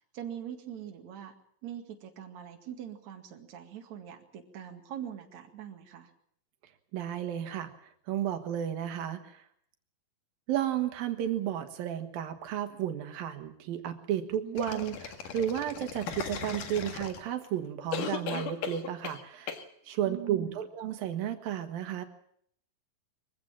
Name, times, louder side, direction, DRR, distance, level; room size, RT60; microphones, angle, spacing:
voice 1, 0.1-1.3 1.6-6.1 14.4-14.6 20.0-20.6, right 9 dB, 55° right, 4 dB, 3.2 m, -42 dB
voice 2, 6.9-7.7 8.1-9.4 10.5-19.5 19.9-22.0, right 10 dB, 90° right, 7 dB, 3.3 m, -33 dB
sound 1, 14.6-17.5 17.9-19.2 19.5-19.6, left 7 dB, 70° left, 3.3 m, -37 dB
23.0 x 15.5 x 8.8 m, 0.67 s
omnidirectional pair, 4.0 m